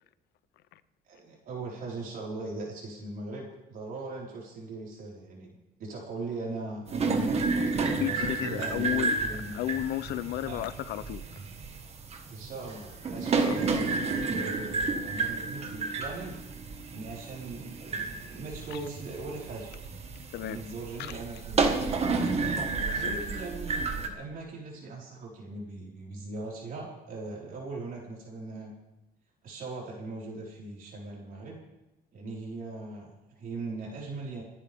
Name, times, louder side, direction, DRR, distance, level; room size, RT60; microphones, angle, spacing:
voice 1, 1.0-7.5 8.1-9.5 10.4-10.6 12.3-16.4 16.9-19.7 20.4-21.9 22.9-28.7 29.4-31.6 32.1-34.4, right 3 dB, 55° right, 5.0 m, -40 dB
sound 1, 6.9-24.1, right 4 dB, 40° right, 1.8 m, -31 dB
voice 2, 8.0-9.2 9.5-11.2 13.4-13.7 18.7-18.8 20.3-20.6 21.0-21.2 23.1-23.2, left 13 dB, 75° left, 0.7 m, -33 dB
29.5 x 10.0 x 3.7 m
cardioid pair, 110°, 17 cm